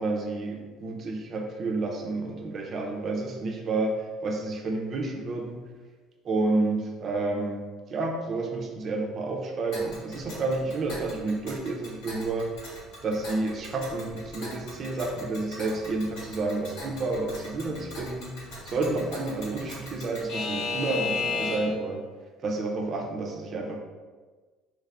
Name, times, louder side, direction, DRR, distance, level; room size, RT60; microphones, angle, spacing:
voice 1, 0.0-5.6 6.2-7.6 7.9-12.5 13.0-22.0 22.4-23.8, right 3 dB, 30° right, 2 dB, 0.4 m, -30 dB
Alarm / Clock, 9.7-21.9, left 3 dB, 90° left, 1.3 m, -37 dB
3.3 x 3.2 x 2.4 m, 1.4 s
cardioid pair, 170°, 0 cm